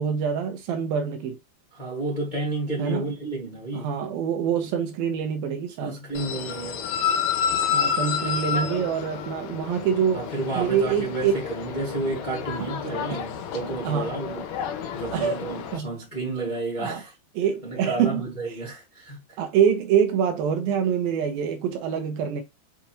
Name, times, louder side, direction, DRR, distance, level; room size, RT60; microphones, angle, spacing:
voice 1, 0.0-1.4 2.8-3.1 3.7-6.0 7.7-10.2 10.6-11.3 12.6-12.7 13.1-13.2 13.8-14.1 15.1-15.4 15.7-15.9 16.8-17.0 17.4-18.3 19.4-22.4, right 8 dB, 80° right, 2.1 m, -25 dB
voice 2, 1.7-3.9 5.8-6.8 10.1-14.4 14.9-17.1 17.6-19.4, right 2 dB, 25° left, 0.9 m, -31 dB
sound 1, 6.1-15.8, left 7 dB, 85° left, 1.8 m, -30 dB
6.8 x 5.1 x 3.0 m
omnidirectional pair, 5.2 m